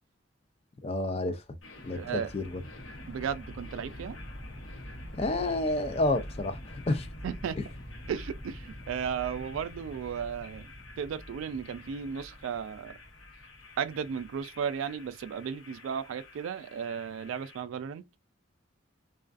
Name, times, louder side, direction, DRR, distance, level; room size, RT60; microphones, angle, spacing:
voice 1, 0.8-1.4 1.8-2.0 2.3-2.6 5.1-7.1, left 2 dB, 30° left, 0.4 m, -29 dB
sound 1, 1.6-17.6, left 1 dB, 80° left, 0.9 m, -45 dB
voice 2, 1.9-2.3 3.1-4.2 7.2-7.6 8.1-10.7 11.0-13.0 13.8-18.2, right 7 dB, 85° right, 0.3 m, -35 dB
2.4 x 2.3 x 2.3 m
head